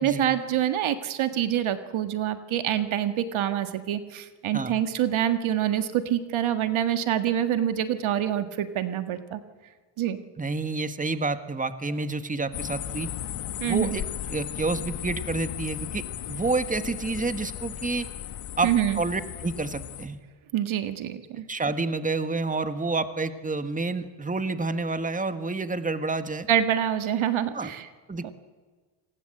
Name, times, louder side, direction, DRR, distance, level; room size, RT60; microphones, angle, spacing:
voice 1, 0.0-9.4 10.0-10.2 13.6-14.0 18.6-19.0 20.5-21.5 26.5-27.9 28.2-28.3, right 10 dB, 75° right, 9 dB, 1.8 m, -26 dB
voice 2, 10.4-13.1 13.6-14.0 14.3-18.1 18.6-20.2 21.5-26.5 27.5-27.7 28.1-28.3, right 3 dB, 15° right, 10 dB, 1.6 m, -29 dB
sound 1, 12.5-20.1, left 11 dB, 80° left, 1.7 m, -36 dB
27.0 x 19.5 x 7.9 m, 1.4 s
cardioid pair, 85°, 49 cm